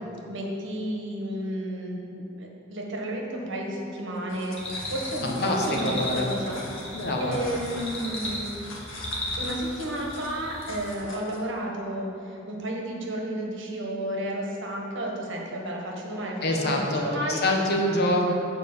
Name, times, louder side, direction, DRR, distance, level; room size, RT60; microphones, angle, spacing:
voice 1, 0.3-4.6 4.9-8.6 9.4-17.5, right 1 dB, 65° right, -1 dB, 1.5 m, -32 dB
sound 1, 4.1-11.5, left 2 dB, 90° left, 1.6 m, -43 dB
sound 2, 4.6-10.9, left 1 dB, 30° left, 1.9 m, -36 dB
voice 2, 5.2-6.3 6.9-7.4 16.4-18.3, left 1 dB, 55° left, 1 dB, 1.1 m, -25 dB
7.5 x 5.0 x 7.3 m, 2.7 s
head